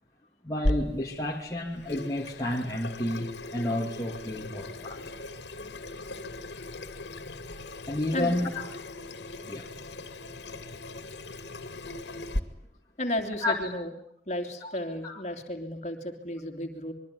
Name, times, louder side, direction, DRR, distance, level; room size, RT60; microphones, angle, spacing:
voice 1, 0.4-5.1 6.0-6.1 6.5-6.6 7.9-8.7 9.4-9.7 13.4-13.7 14.6-14.8 15.0-15.2, left 1 dB, 20° left, -2 dB, 2.4 m, -31 dB
Water tap faucet / Sink (filling or washing), 0.6-12.4, left 1 dB, 80° left, 2.4 m, -37 dB
voice 2, 13.0-13.9 14.3-16.9, left 1 dB, 40° left, 6 dB, 3.0 m, -33 dB
25.5 x 23.0 x 9.7 m, 0.73 s
head